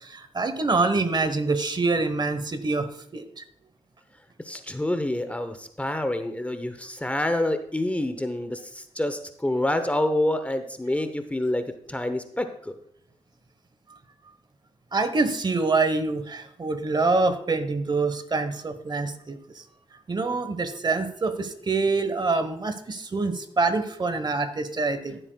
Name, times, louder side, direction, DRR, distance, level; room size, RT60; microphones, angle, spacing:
voice 1, 0.0-3.4 14.9-19.6 20.1-25.2, right 3 dB, 40° right, 10 dB, 1.1 m, -26 dB
voice 2, 4.4-12.7, left 1 dB, 10° left, 8 dB, 0.8 m, -27 dB
14.5 x 7.7 x 2.3 m, 0.68 s
cardioid pair, 65°, 11 cm